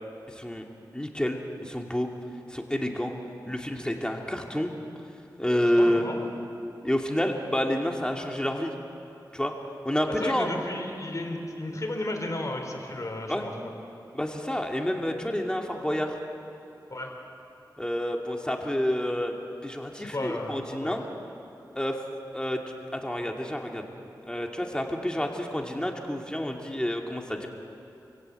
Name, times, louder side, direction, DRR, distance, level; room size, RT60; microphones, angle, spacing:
voice 1, 0.3-0.7 0.9-2.1 2.5-3.1 3.5-4.7 5.4-6.1 6.8-8.7 9.3-9.5 9.8-10.5 13.3-13.5 14.1-16.2 17.8-19.4 19.6-21.0 21.8-22.0 22.3-22.6 22.9-23.9 24.3-27.5, equal, 10° left, 1 dB, 2.4 m, -28 dB
voice 2, 5.8-6.3 10.2-13.5 16.9-17.1 20.0-21.0, left 1 dB, 45° left, 1 dB, 4.3 m, -33 dB
27.5 x 17.0 x 8.2 m, 2.7 s
wide cardioid pair, 60°, 8 cm